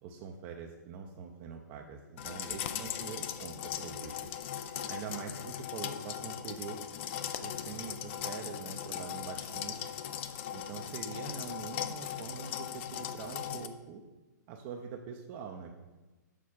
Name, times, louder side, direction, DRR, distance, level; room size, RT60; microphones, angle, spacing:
voice 1, 0.0-4.1 4.9-6.9 7.2-9.9 10.5-14.0 14.5-15.7, right 6 dB, 35° right, 2 dB, 0.6 m, -44 dB
sound 1, 2.2-13.7, left 10 dB, 40° left, 0.4 m, -39 dB
6.6 x 4.1 x 5.7 m, 1.1 s
hypercardioid pair, 125°, 10 cm